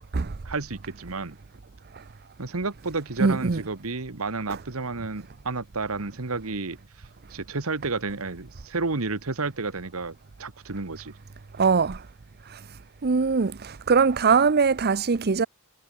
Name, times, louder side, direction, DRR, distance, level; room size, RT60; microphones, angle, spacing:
voice 1, 0.4-1.4 2.4-6.8 7.3-11.1, right 3 dB, 80° right, 1.5 m, -31 dB
voice 2, 3.2-3.6 4.5-4.6 11.6-12.0 13.0-13.5 13.9-15.5, right 5 dB, 50° right, 0.7 m, -21 dB
head